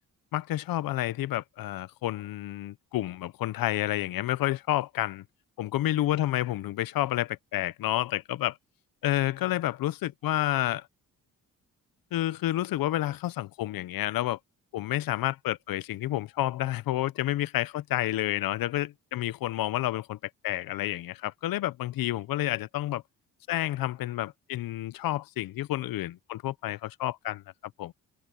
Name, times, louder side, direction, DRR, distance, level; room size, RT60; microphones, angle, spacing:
voice 1, 0.3-5.2 5.6-8.6 9.0-10.9 12.1-14.4 14.7-20.2 20.4-23.0 23.5-27.4 27.8-27.9, left 14 dB, 80° left, 0.7 m, -29 dB
cardioid pair, 125°, 34 cm